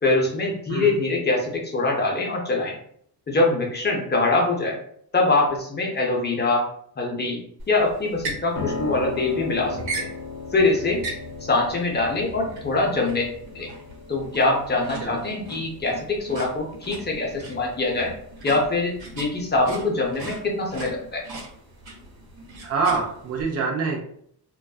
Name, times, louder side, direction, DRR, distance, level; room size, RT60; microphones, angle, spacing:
voice 1, 0.0-2.7 3.3-4.8 5.1-6.7 7.0-7.4 7.7-10.1 10.5-11.0 11.4-13.3 13.5-13.7 14.1-18.1 18.4-21.2, left 2 dB, 25° left, 0 dB, 0.5 m, -23 dB
sound 1, 7.6-23.4, right 2 dB, 65° right, 1.1 m, -39 dB
Piano, 8.5-18.5, left 3 dB, 90° left, 0.6 m, -37 dB
voice 2, 22.6-24.0, right 4 dB, 40° right, -1 dB, 0.5 m, -25 dB
2.5 x 2.3 x 2.3 m, 0.65 s
wide cardioid pair, 155°, 40 cm